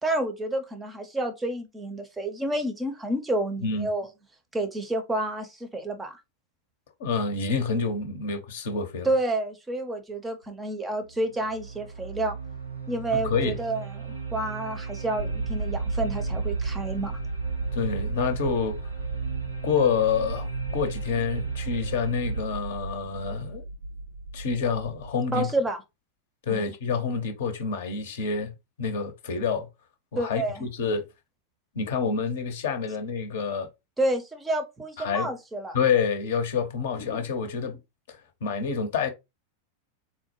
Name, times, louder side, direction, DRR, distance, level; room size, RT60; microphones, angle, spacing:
voice 1, 0.0-4.1 4.5-6.2 9.0-12.4 12.9-17.2 25.3-25.8 26.5-26.6 30.2-30.7 34.0-35.8, right 1 dB, 10° right, 0.6 m, -29 dB
voice 2, 7.0-9.1 13.1-13.6 17.7-18.8 19.6-23.6 24.3-25.5 26.5-28.5 28.8-29.7 30.1-31.0 31.7-33.7 35.0-35.3 35.7-37.8 38.1-39.1, left 5 dB, 55° left, 0.7 m, -27 dB
sound 1, 10.4-10.5 11.1-22.4, right 6 dB, 90° right, 0.9 m, -35 dB
sound 2, 15.2-25.1, right 1 dB, 70° right, 0.4 m, -35 dB
3.7 x 2.1 x 2.9 m
figure-of-eight pair, 90°, 0 cm